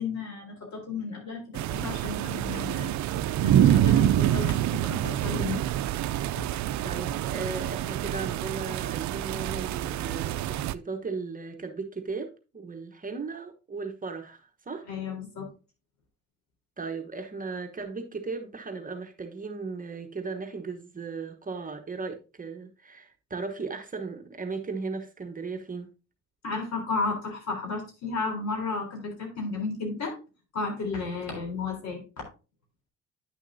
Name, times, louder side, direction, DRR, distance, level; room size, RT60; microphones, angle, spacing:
voice 1, 0.0-1.4 1.7-2.9 3.4-5.6 6.4-6.5 14.9-15.5 26.4-30.2 30.5-32.3, left 4 dB, 65° left, 3.7 m, -33 dB
sound 1, 1.5-10.7, right 12 dB, 70° right, 0.5 m, -26 dB
voice 2, 6.8-14.9 16.8-25.9, right 4 dB, 25° right, 1.1 m, -36 dB
9.9 x 6.3 x 2.7 m
cardioid pair, 90°, 30 cm